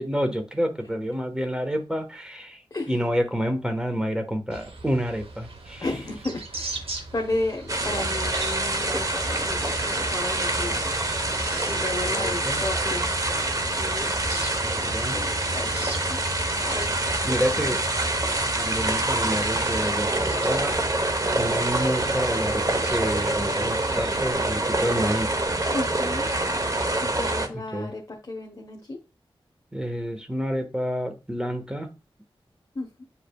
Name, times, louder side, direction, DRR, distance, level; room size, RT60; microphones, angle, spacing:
voice 1, 0.0-2.6 2.9-5.8 12.1-12.6 14.6-15.2 17.2-17.8 18.6-20.8 21.3-25.3 27.5-27.9 29.7-31.9, equal, 10° right, 6 dB, 1.3 m, -29 dB
sound 1, 4.5-24.3, right 2 dB, 80° right, 1.1 m, -39 dB
voice 2, 5.8-10.8 11.7-13.1 13.6-14.4 14.8-16.2 16.6-17.8 25.7-26.3 27.1-29.0 32.7-33.0, left 2 dB, 35° left, 0 dB, 1.2 m, -34 dB
sound 2, 7.7-27.5, right 2 dB, 35° right, 1.0 m, -26 dB
8.3 x 5.0 x 2.3 m, 0.30 s
wide cardioid pair, 65°, 10 cm